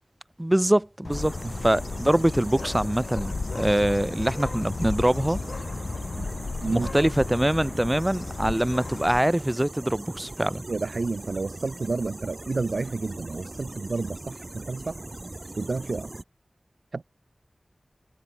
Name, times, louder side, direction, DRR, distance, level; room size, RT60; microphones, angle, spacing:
voice 1, 0.4-1.3 1.6-5.4 6.7-10.6, right 1 dB, 15° right, 1.7 m, -24 dB
Bird, 1.0-9.2, left 3 dB, 85° left, 1.6 m, -34 dB
sound 1, 1.1-16.2, right 2 dB, 40° right, 1.6 m, -40 dB
voice 2, 6.6-7.1 10.7-15.0 15.6-16.1 16.9-17.0, right 3 dB, 75° right, 0.4 m, -30 dB
wide cardioid pair, 65°, 0 cm